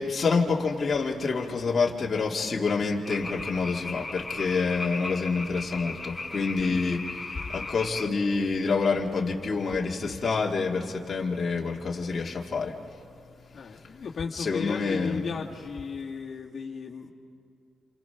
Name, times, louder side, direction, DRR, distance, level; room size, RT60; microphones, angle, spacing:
voice 1, 0.0-13.0 13.6-13.8 14.3-15.2, left 4 dB, 40° left, -2 dB, 2.2 m, -27 dB
sound 1, 3.0-8.1, left 3 dB, 20° left, 1.9 m, -36 dB
voice 2, 13.5-17.1, left 5 dB, 55° left, -3 dB, 2.1 m, -35 dB
28.5 x 28.0 x 5.9 m, 2.4 s
cardioid pair, 95°, 0 cm